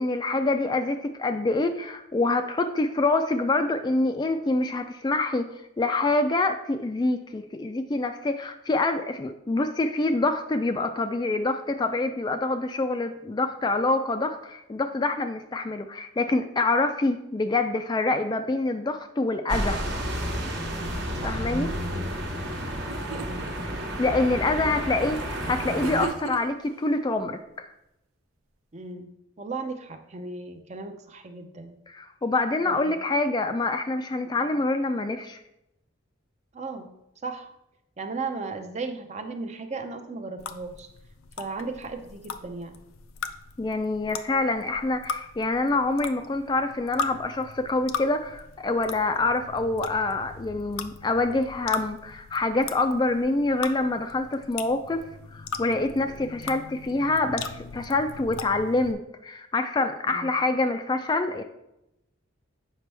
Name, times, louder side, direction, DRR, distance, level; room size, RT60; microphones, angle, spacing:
voice 1, 0.0-5.5 5.8-19.8 21.2-21.7 22.3-22.4 24.0-27.7 31.9-35.4 43.6-55.0 55.3-61.4, left 2 dB, 20° left, 7 dB, 0.3 m, -26 dB
sound 1, 19.5-26.1, equal, 55° right, 1.1 m, -31 dB
voice 2, 20.7-21.4 21.9-22.1 23.1-23.5 24.3-24.8 28.7-31.8 32.7-33.0 34.4-34.5 36.5-36.9 37.2-37.5 38.0-40.9 41.4-42.8 60.1-60.4, right 3 dB, 35° right, 7 dB, 0.5 m, -36 dB
sound 2, 22.9-23.5 25.8-26.7, right 6 dB, 80° right, 0.6 m, -36 dB
sound 3, 40.4-58.9, left 5 dB, 80° left, 0.5 m, -39 dB
7.4 x 5.2 x 3.3 m, 0.85 s
head